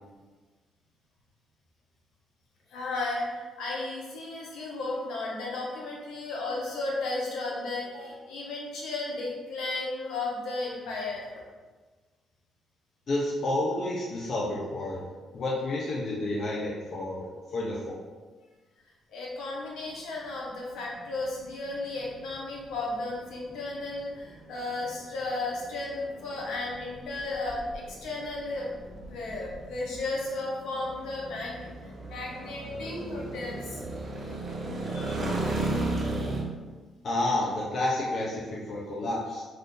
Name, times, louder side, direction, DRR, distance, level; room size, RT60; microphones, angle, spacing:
voice 1, 2.7-11.4 19.1-28.7 29.1-31.7 32.1-33.9 34.8-35.2, left 2 dB, 80° left, -3 dB, 0.8 m, -34 dB
voice 2, 13.1-15.0 15.3-18.0 37.0-39.4, left 2 dB, 55° left, -4 dB, 0.6 m, -30 dB
sound 1, 20.3-36.4, right 2 dB, 40° right, 0.6 m, -36 dB
2.5 x 2.5 x 3.6 m, 1.3 s
cardioid pair, 90°, 0 cm